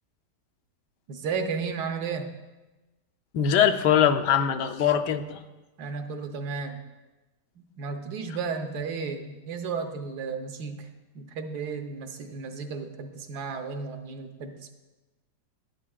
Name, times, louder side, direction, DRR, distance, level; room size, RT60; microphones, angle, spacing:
voice 1, 1.1-2.3 5.8-6.8 7.6-10.9 11.1-14.7, right 5 dB, 75° right, 5 dB, 1.3 m, -33 dB
voice 2, 3.3-5.4, left 8 dB, 80° left, 9 dB, 1.2 m, -22 dB
12.0 x 10.0 x 2.3 m, 1.1 s
omnidirectional pair, 1.8 m